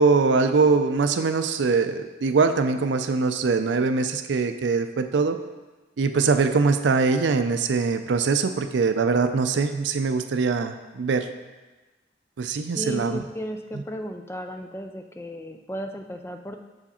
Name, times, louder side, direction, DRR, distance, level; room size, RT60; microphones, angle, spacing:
voice 1, 0.0-5.4 6.0-11.3 12.4-13.2, right 4 dB, 80° right, 8 dB, 0.4 m, -22 dB
voice 2, 12.8-16.6, equal, 15° left, 5 dB, 0.3 m, -34 dB
6.6 x 4.8 x 4.3 m, 1.2 s
head